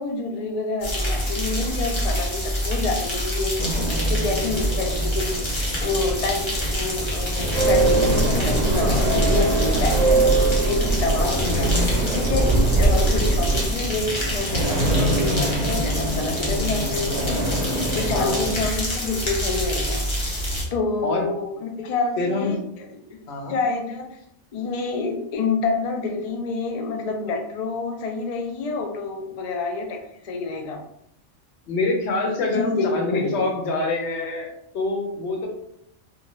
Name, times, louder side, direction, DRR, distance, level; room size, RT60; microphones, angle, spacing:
voice 1, 0.0-5.3 5.8-10.3 10.7-11.7 12.0-17.4 17.9-20.0 20.7-23.2 23.5-24.1 24.5-30.0 30.2-30.8 32.3-33.5, left 3 dB, 90° left, 3 dB, 0.3 m, -28 dB
sound 1, 0.8-20.6, equal, 30° left, 0.6 m, -26 dB
sound 2, 3.6-18.6, equal, 45° right, 0.6 m, -29 dB
sound 3, 7.5-13.7, right 3 dB, 85° right, 0.9 m, -21 dB
voice 2, 11.2-12.0 14.9-15.4 18.1-18.5 21.0-21.3 22.2-22.6 23.3-23.6 31.7-35.5, left 2 dB, 65° left, 1 dB, 0.9 m, -26 dB
2.5 x 2.2 x 3.0 m, 0.75 s
omnidirectional pair, 1.2 m